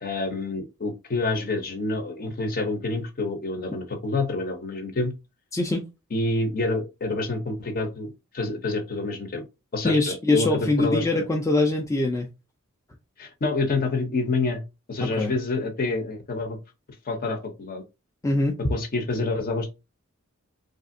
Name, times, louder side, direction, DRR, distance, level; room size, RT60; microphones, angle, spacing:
voice 1, 0.0-5.1 6.1-9.4 9.7-11.2 13.2-14.6 14.9-16.6 17.1-17.8 18.7-19.7, left 3 dB, 45° left, 0.7 m, -27 dB
voice 2, 5.5-5.8 9.8-12.3 15.0-15.3 18.2-18.6, left 2 dB, 15° left, 0.3 m, -23 dB
3.3 x 2.5 x 2.6 m
head